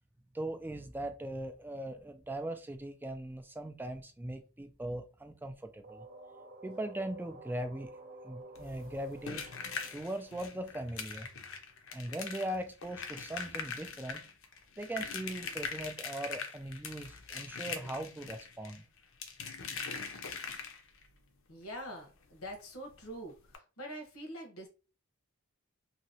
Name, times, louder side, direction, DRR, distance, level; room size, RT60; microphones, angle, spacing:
voice 1, 0.3-6.1 6.6-7.9 8.2-9.4 9.9-11.3 11.9-14.2 14.8-18.8, right 1 dB, 10° right, 0.3 m, -40 dB
sound 1, 5.8-11.6, right 2 dB, 40° right, 0.7 m, -52 dB
sound 2, 8.5-21.1 22.5-22.6 22.9-23.0 23.5-23.6, left 6 dB, 65° left, 0.6 m, -42 dB
voice 2, 21.5-24.7, equal, 90° left, 1.1 m, -44 dB
2.8 x 2.8 x 2.7 m
head